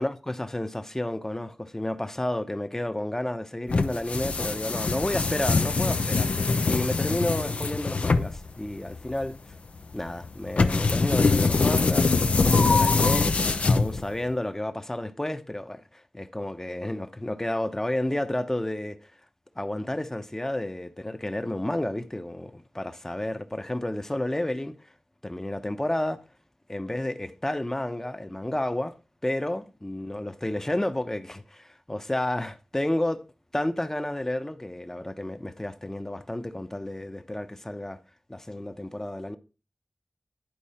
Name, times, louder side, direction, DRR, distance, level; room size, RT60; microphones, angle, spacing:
voice 1, 0.0-9.3 9.9-13.3 13.6-19.0 19.6-24.7 25.2-26.2 26.7-28.9 29.2-33.2 33.5-38.0 38.3-39.4, left 1 dB, 20° left, 0.8 m, -31 dB
sound 1, 3.7-14.3, left 4 dB, 70° left, 0.6 m, -24 dB
10.5 x 4.5 x 4.3 m
cardioid pair, 45°, 2 cm